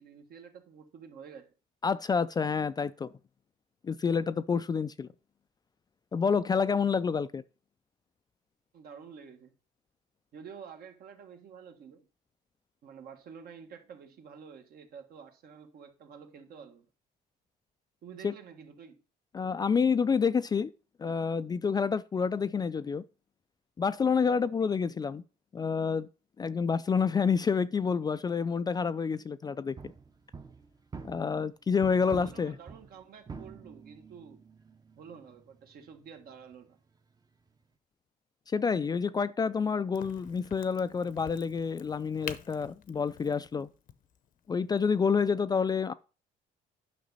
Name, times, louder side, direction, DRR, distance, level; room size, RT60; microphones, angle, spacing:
voice 1, 0.0-1.5 8.7-9.5 10.3-12.1 12.8-16.9 18.0-19.0 31.9-34.5 35.0-36.8, right 6 dB, 65° right, 1.5 m, -49 dB
voice 2, 1.8-3.1 3.8-5.1 6.1-7.4 18.2-18.3 19.3-20.7 21.0-23.0 23.8-25.2 25.5-26.1 26.4-29.8 31.0-32.5 38.5-43.7 44.5-45.9, left 5 dB, 25° left, 0.3 m, -28 dB
sound 1, 29.8-31.5 31.8-37.6, right 5 dB, 25° right, 0.7 m, -48 dB
Crack, 39.9-45.4, left 9 dB, 55° left, 0.7 m, -48 dB
9.5 x 5.9 x 4.1 m
cardioid pair, 110°, 17 cm